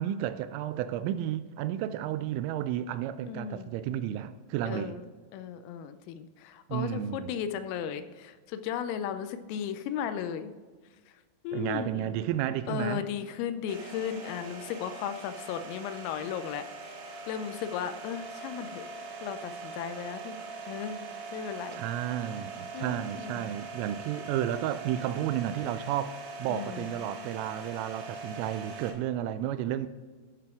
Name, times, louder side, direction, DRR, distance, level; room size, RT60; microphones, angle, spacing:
voice 1, 0.0-5.0 6.7-7.4 11.5-13.0 21.7-29.9, right 11 dB, 85° right, 3.1 m, -32 dB
voice 2, 3.3-3.7 4.6-5.0 5.3-10.5 11.4-12.2 12.7-16.7 17.3-18.8 19.2-20.4 20.7-21.0 21.3-21.8 22.7-23.5 26.5-27.0, left 8 dB, 85° left, 3.3 m, -35 dB
sound 1, 13.7-28.9, right 3 dB, 70° right, 3.3 m, -42 dB
11.5 x 6.8 x 3.6 m
omnidirectional pair, 5.9 m